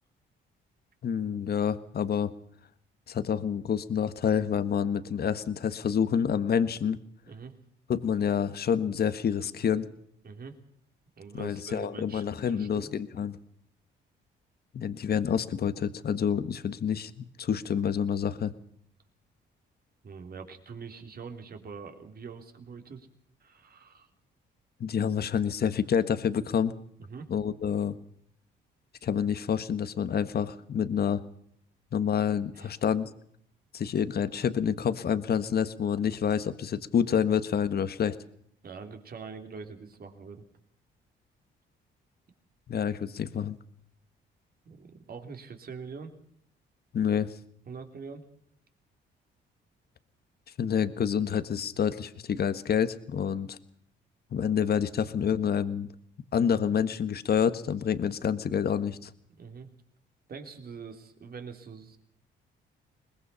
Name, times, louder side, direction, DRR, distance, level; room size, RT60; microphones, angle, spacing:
voice 1, 1.0-2.3 3.1-7.0 7.9-9.9 11.3-13.4 14.7-18.5 24.8-26.7 27.3-28.0 29.0-31.2 31.9-33.1 33.7-38.2 42.7-43.6 46.9-47.3 50.6-53.6 54.3-55.9 56.3-59.1, left 7 dB, 50° left, 12 dB, 1.5 m, -28 dB
voice 2, 11.2-12.9 20.0-23.1 23.4-24.1 27.0-27.3 32.5-32.8 38.6-40.4 44.6-46.1 47.7-48.2 59.4-59.7 60.3-62.0, right 5 dB, 50° right, 6 dB, 3.5 m, -44 dB
22.5 x 20.5 x 5.6 m, 0.66 s
cardioid pair, 90°, 20 cm